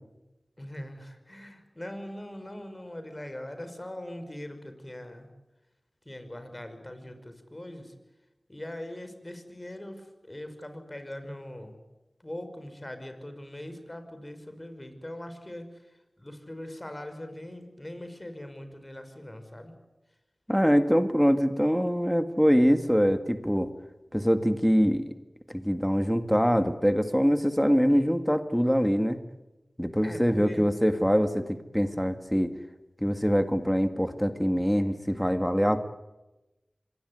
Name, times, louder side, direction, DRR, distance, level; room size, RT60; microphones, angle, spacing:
voice 1, 0.6-5.3 6.1-7.9 8.5-11.8 12.2-19.7 27.9-28.0 30.0-30.7, left 1 dB, 30° left, 8 dB, 5.6 m, -41 dB
voice 2, 20.5-23.7 24.1-25.1 25.5-29.2 29.8-32.5 33.0-35.9, equal, ahead, 8 dB, 1.9 m, -24 dB
25.0 x 20.5 x 9.6 m, 1.0 s
wide cardioid pair, 40°, 0 cm